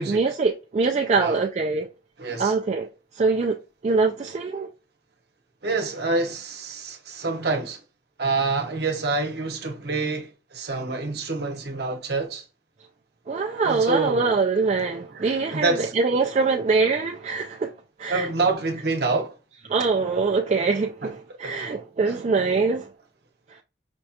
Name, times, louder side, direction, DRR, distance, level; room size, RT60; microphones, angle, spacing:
voice 1, 0.1-1.9 2.4-2.9 3.1-4.7 13.3-17.7 18.0-18.3 19.7-22.9 23.5-23.6, right 4 dB, 35° right, 0.3 m, -23 dB
voice 2, 2.2-2.5 5.6-7.8 8.2-12.4 13.6-14.3 15.1-15.9 18.1-19.3 21.0-21.1 21.4-21.7 22.1-22.2, right 3 dB, 60° right, 0.9 m, -27 dB
5.2 x 2.3 x 2.8 m
head